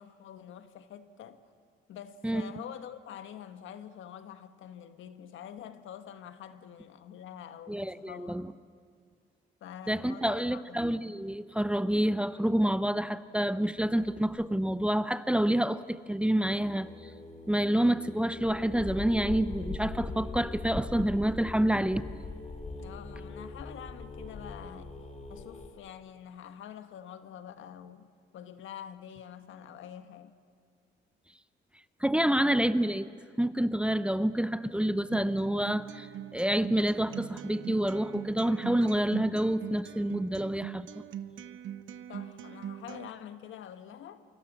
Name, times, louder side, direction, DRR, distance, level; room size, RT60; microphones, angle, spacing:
voice 1, 0.0-1.4 1.9-8.5 9.6-11.1 17.6-18.0 22.7-24.9 25.3-30.4 42.1-44.2, left 9 dB, 80° left, 1.4 m, -46 dB
voice 2, 7.7-8.5 9.9-16.9 17.5-22.0 32.0-33.1 33.4-36.1 36.3-40.9, right 1 dB, 5° right, 0.7 m, -28 dB
sound 1, 13.8-14.4 16.6-25.7, left 3 dB, 35° left, 3.4 m, -41 dB
Acoustic guitar, 35.1-43.1, right 10 dB, 75° right, 0.9 m, -42 dB
28.5 x 24.5 x 7.4 m
cardioid pair, 90°, 20 cm